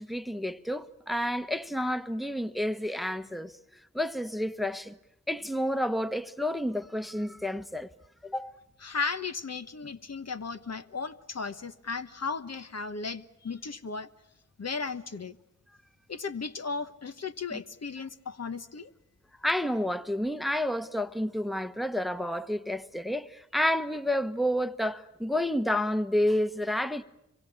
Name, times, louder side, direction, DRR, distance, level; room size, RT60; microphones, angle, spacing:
voice 1, 0.0-3.6 3.9-4.9 5.3-7.9 8.2-8.5 17.5-17.6 19.4-27.0, left 1 dB, ahead, 1.1 m, -30 dB
voice 2, 8.8-14.1 14.6-15.4 16.1-18.9, left 4 dB, 55° left, 1.1 m, -35 dB
25.5 x 23.5 x 8.7 m
cardioid pair, 40°, 30 cm